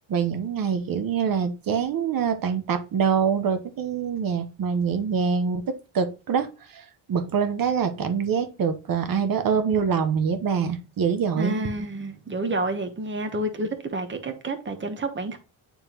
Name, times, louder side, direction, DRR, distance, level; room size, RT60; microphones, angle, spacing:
voice 1, 0.1-11.5, right 6 dB, 45° right, 1.0 m, -25 dB
voice 2, 11.4-15.4, right 2 dB, 25° right, 1.1 m, -29 dB
9.2 x 3.6 x 3.0 m
cardioid pair, 100°, 48 cm